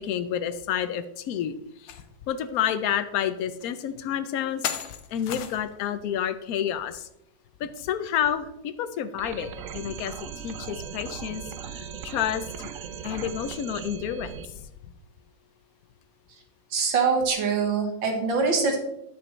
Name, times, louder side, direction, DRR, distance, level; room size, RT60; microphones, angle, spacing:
voice 1, 0.0-2.0 2.3-7.1 7.6-12.7 13.0-14.3 14.6-14.7, left 9 dB, 70° left, 11 dB, 0.9 m, -30 dB
sound 1, 1.9-2.0 2.5-2.6 3.6-3.7 4.6-5.8, left 9 dB, 90° left, 1.5 m, -34 dB
sound 2, 9.2-14.5, right 7 dB, 70° right, 0.8 m, -38 dB
voice 2, 16.7-18.8, right 5 dB, 90° right, 3 dB, 2.1 m, -24 dB
10.0 x 7.7 x 3.2 m, 0.80 s
omnidirectional pair, 2.0 m